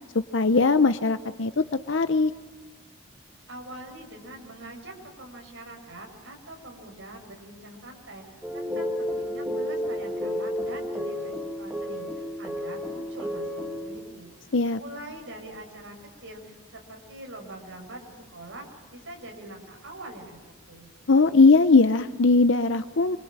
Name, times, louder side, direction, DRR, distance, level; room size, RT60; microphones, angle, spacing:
voice 1, 0.3-2.3 14.5-14.8 21.1-23.2, left 3 dB, 60° left, 11 dB, 0.7 m, -20 dB
voice 2, 3.5-20.9, right 1 dB, 65° right, 2 dB, 6.1 m, -44 dB
sound 1, 8.4-14.4, left 1 dB, 5° right, 2.2 m, -32 dB
27.5 x 23.5 x 8.8 m, 1.4 s
head